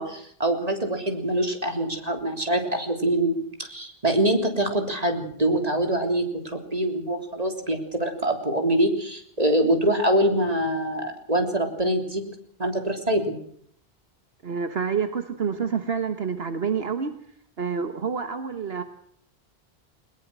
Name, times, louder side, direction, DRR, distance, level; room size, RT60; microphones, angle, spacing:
voice 1, 0.0-12.2 12.6-13.4, right 1 dB, 40° right, 5 dB, 3.7 m, -24 dB
voice 2, 14.4-17.2 17.6-18.8, right 6 dB, 70° right, 9 dB, 1.6 m, -28 dB
21.0 x 21.0 x 6.2 m, 0.65 s
omnidirectional pair, 1.1 m